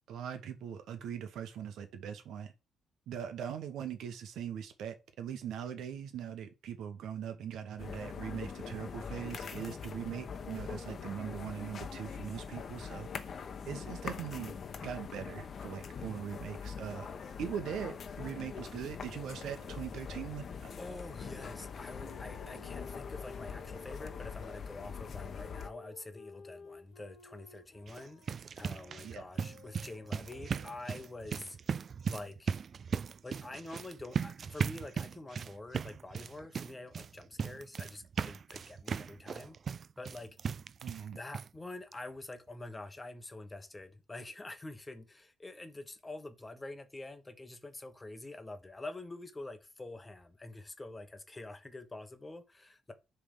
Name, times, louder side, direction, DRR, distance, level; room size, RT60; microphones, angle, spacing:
voice 1, 0.1-2.5 3.1-13.1 13.7-14.5 14.8-17.1 17.4-20.7 29.0-29.2 40.8-41.2, right 8 dB, 80° right, 1.0 m, -41 dB
sound 1, 7.8-25.7, left 6 dB, 50° left, 0.9 m, -43 dB
Wind instrument woodwind instrument, 18.7-24.6 25.4-31.1, left 5 dB, 70° left, 1.4 m, -55 dB
voice 2, 20.8-28.2 28.6-31.6 32.1-32.5 33.2-39.6 40.0-40.4 41.1-52.9, left 2 dB, 20° left, 1.0 m, -46 dB
sound 2, 27.8-41.1 41.3-41.5 41.9-42.0 42.3-42.4, right 6 dB, 50° right, 0.3 m, -38 dB
6.8 x 3.4 x 5.4 m
cardioid pair, 90°, 0 cm